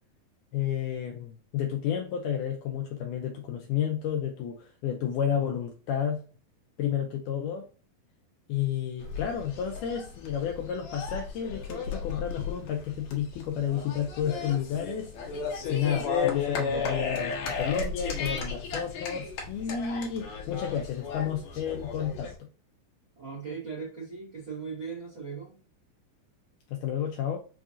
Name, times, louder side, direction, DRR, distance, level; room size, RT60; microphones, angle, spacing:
voice 1, 0.5-6.2 6.8-7.7 8.5-15.1 15.7-22.5 26.7-27.4, left 9 dB, 90° left, 3 dB, 1.8 m, -31 dB
sound 1, 9.0-22.4, left 5 dB, 70° left, 1.8 m, -34 dB
voice 2, 23.1-25.6, right 5 dB, 85° right, -3 dB, 1.1 m, -38 dB
5.6 x 2.4 x 2.6 m, 0.38 s
omnidirectional pair, 4.2 m